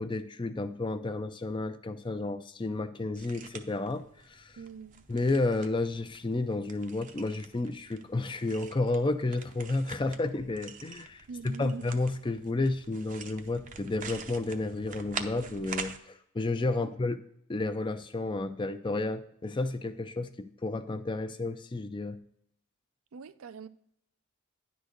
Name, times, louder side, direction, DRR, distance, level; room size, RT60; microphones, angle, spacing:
voice 1, 0.0-4.6 5.1-17.2 17.5-22.2, left 2 dB, 20° left, 0.4 m, -31 dB
sound 1, 3.2-16.0, right 6 dB, 35° right, 0.6 m, -45 dB
voice 2, 4.6-5.0 11.3-11.9 16.8-16.9 23.1-23.7, right 5 dB, 80° right, 0.5 m, -42 dB
10.0 x 3.9 x 6.4 m
head